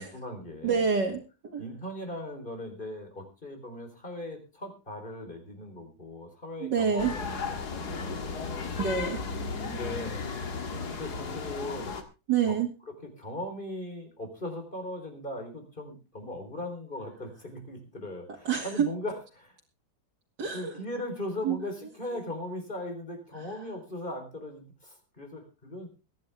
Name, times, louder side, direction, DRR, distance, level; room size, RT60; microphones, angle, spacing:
voice 1, 0.0-0.9 1.6-8.7 9.6-10.3 10.8-12.0 12.4-12.6 12.9-19.6 20.5-25.9, left 1 dB, 25° left, 5 dB, 4.2 m, -39 dB
voice 2, 0.6-1.6 6.6-7.1 8.8-9.2 12.3-12.7 18.4-18.9 20.4-20.7 21.4-21.6, right 6 dB, 65° right, -2 dB, 2.8 m, -27 dB
sound 1, 7.0-12.0, left 5 dB, 55° left, 2.3 m, -35 dB
23.0 x 10.5 x 3.5 m, 0.31 s
omnidirectional pair, 2.1 m